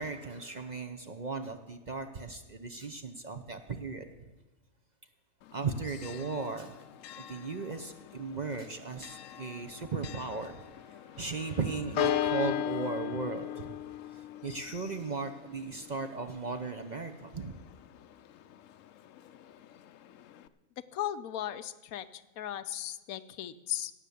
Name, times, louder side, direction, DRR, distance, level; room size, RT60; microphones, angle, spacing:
voice 1, 0.0-4.3 5.5-6.8 7.1-13.8 14.1-17.5, right 4 dB, 40° right, 8 dB, 0.7 m, -37 dB
Church bell, 5.4-20.5, left 11 dB, 70° left, 0.9 m, -39 dB
voice 2, 20.9-22.1 22.4-23.9, left 11 dB, 90° left, 13 dB, 1.2 m, -36 dB
16.5 x 6.8 x 8.4 m, 1.1 s
omnidirectional pair, 1.5 m